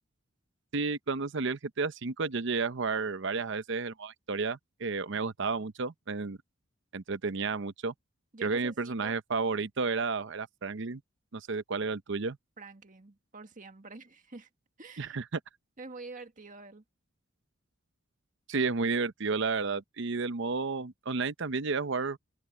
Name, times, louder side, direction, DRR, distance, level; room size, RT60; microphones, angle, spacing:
voice 1, 0.7-6.4 6.9-7.9 8.4-11.0 11.3-12.4 15.0-15.4 18.5-22.2, right 4 dB, 60° right, 0.8 m, -32 dB
voice 2, 8.3-9.2 12.6-14.5 14.8-15.2 15.8-16.8, right 3 dB, 40° right, 1.8 m, -47 dB
head